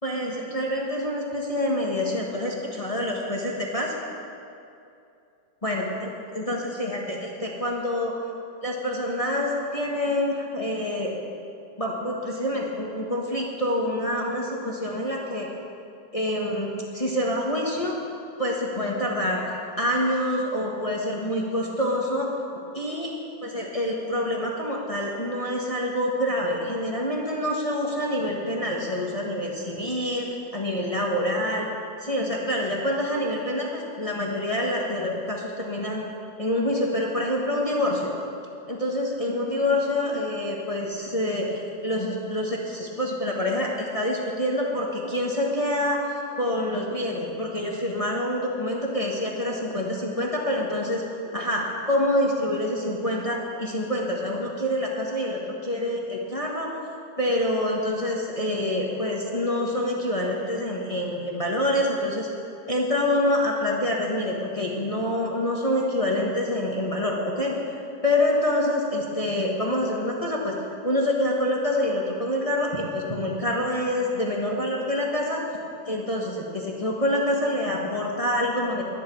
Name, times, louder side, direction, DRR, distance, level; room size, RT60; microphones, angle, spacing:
voice 1, 0.0-3.9 5.6-8.1 8.6-11.1 11.8-15.5 16.1-18.0 18.4-19.4 19.8-22.3 22.7-23.1 23.4-31.7 32.0-36.0 36.4-38.1 38.7-51.0 51.3-56.7 57.2-62.3 62.7-67.6 68.0-70.5 70.8-75.4 75.9-78.8, left 1 dB, 20° left, -2 dB, 1.4 m, -26 dB
22.5 x 10.0 x 4.8 m, 2.6 s
omnidirectional pair, 2.1 m